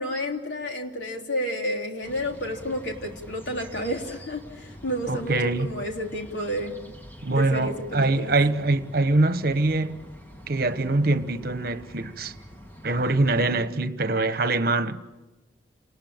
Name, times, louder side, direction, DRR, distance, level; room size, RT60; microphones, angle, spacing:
voice 1, 0.0-6.8 7.3-8.4, equal, 85° left, 3.6 m, -31 dB
sound 1, 2.0-13.7, equal, 10° left, 1.8 m, -45 dB
voice 2, 5.1-5.7 7.2-10.1 10.5-12.3 12.8-15.0, right 2 dB, 55° right, 1.2 m, -24 dB
29.5 x 20.0 x 8.9 m
head